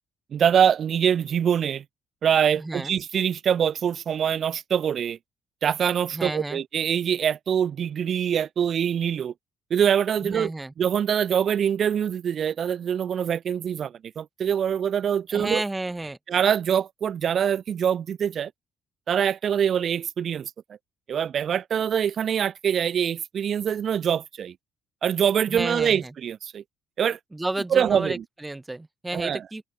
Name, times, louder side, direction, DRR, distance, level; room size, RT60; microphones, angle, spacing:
voice 1, 0.3-1.8 2.2-5.2 5.6-9.3 9.7-10.5 10.8-15.6 16.3-18.5 19.1-20.5 21.1-24.5 25.0-26.6 27.0-27.2 27.7-28.2 29.1-29.4, right 8 dB, 50° right, 1.3 m, -24 dB
voice 2, 2.6-2.9 6.1-6.6 10.2-10.7 15.3-16.2 25.5-26.1 27.3-29.6, right 2 dB, 15° right, 4.6 m, -31 dB
open air
figure-of-eight pair, 45°, 0 cm